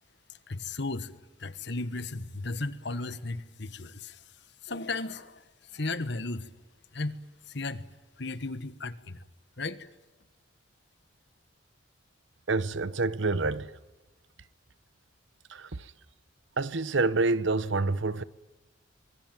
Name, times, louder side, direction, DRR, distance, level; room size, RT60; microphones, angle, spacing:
voice 1, 0.5-1.1 1.4-4.2 4.6-5.4 5.7-6.5 6.9-7.2 7.5-7.8 8.2-9.2 9.6-9.9, left 3 dB, 60° left, 1.4 m, -35 dB
voice 2, 12.5-13.8 15.5-15.9 16.6-18.2, right 3 dB, 65° right, 0.9 m, -27 dB
25.5 x 22.5 x 9.2 m
head